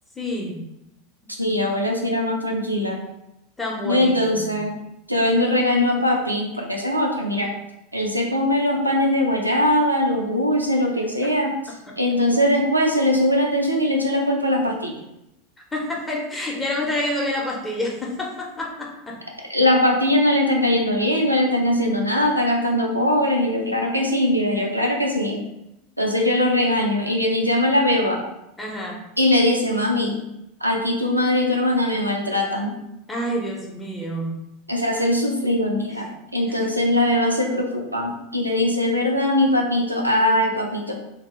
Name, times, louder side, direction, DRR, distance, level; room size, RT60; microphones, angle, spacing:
voice 1, 0.2-0.6 3.6-4.6 15.7-19.1 28.6-29.0 33.1-34.3 36.5-36.7, left 1 dB, 15° left, -2 dB, 0.7 m, -28 dB
voice 2, 1.4-3.0 3.8-4.7 5.1-7.5 7.9-11.6 12.0-15.0 19.5-25.4 26.0-28.2 29.2-30.2 30.6-32.8 34.7-40.9, left 1 dB, 90° right, 0 dB, 0.4 m, -21 dB
2.8 x 2.2 x 3.0 m, 0.87 s
figure-of-eight pair, 85°, 0 cm